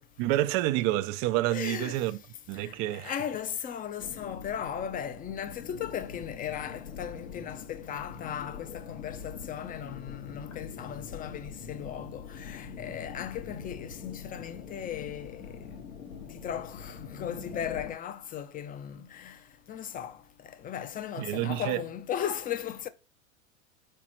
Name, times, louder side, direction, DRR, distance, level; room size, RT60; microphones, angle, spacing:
voice 1, 0.2-2.2 2.5-3.1 21.2-21.8, right 15 dB, 40° right, 0.5 m, -28 dB
voice 2, 1.5-2.0 2.6-15.6 16.4-19.4 19.7-20.2 20.4-22.9, left 9 dB, 20° left, 0.6 m, -37 dB
sound 1, 4.0-17.9, left 6 dB, 75° left, 2.2 m, -43 dB
4.9 x 4.5 x 6.1 m
hypercardioid pair, 115°, 40 cm